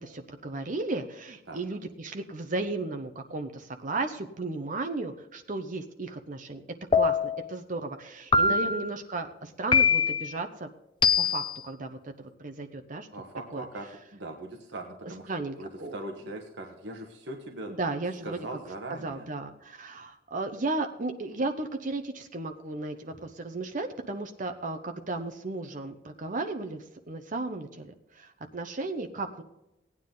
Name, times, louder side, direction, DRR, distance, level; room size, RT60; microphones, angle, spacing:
voice 1, 0.0-6.6 6.9-10.7 11.2-13.1 13.5-13.6 15.3-16.0 17.7-18.4 19.0-27.9 28.1-29.4, right 3 dB, 45° right, 6 dB, 0.9 m, -34 dB
sound 1, 6.9-7.5 8.3-8.9 9.7-10.3 11.0-11.6, left 5 dB, 25° left, 0.6 m, -23 dB
voice 2, 13.1-15.3 15.6-17.7 18.2-19.3, right 1 dB, 75° right, 2 dB, 1.4 m, -40 dB
17.0 x 9.6 x 3.9 m, 0.91 s
head